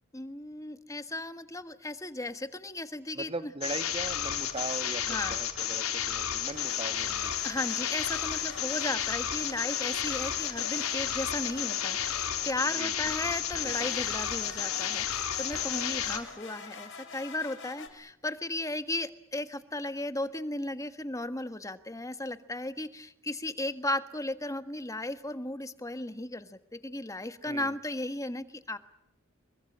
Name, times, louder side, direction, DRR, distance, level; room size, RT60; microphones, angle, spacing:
voice 1, 0.1-3.5 5.0-5.4 7.4-28.8, left 2 dB, 15° left, 10 dB, 1.5 m, -35 dB
voice 2, 3.1-7.3 12.7-13.3 13.6-13.9 27.4-27.8, right 2 dB, 25° right, 11 dB, 1.5 m, -40 dB
sound 1, 3.6-16.2, left 9 dB, 90° left, 3.8 m, -32 dB
sound 2, 4.4-5.4 6.5-12.9 13.5-17.9, left 5 dB, 60° left, 5.2 m, -46 dB
27.0 x 23.0 x 8.7 m, 0.74 s
head